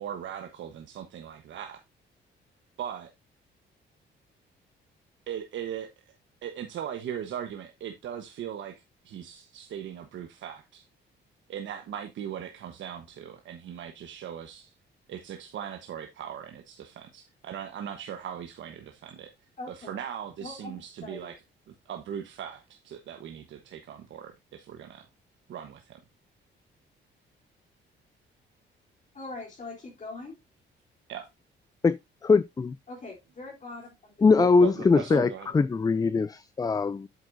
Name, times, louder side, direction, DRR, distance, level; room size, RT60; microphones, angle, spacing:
voice 1, 0.0-1.8 2.8-3.1 5.3-5.9 6.4-8.7 9.0-10.9 11.5-14.7 15.1-19.3 19.9-21.3 21.8-25.1 25.5-26.0 31.1-31.3 34.4-35.5, right 9 dB, 70° right, 1.1 m, -39 dB
voice 2, 19.6-20.0 20.4-21.3 29.1-30.4 32.9-34.5 35.1-35.3, left 3 dB, 40° left, 3.4 m, -42 dB
voice 3, 32.2-32.8 34.2-37.1, left 4 dB, 20° left, 0.4 m, -22 dB
8.1 x 7.9 x 2.6 m
cardioid pair, 90°, 20 cm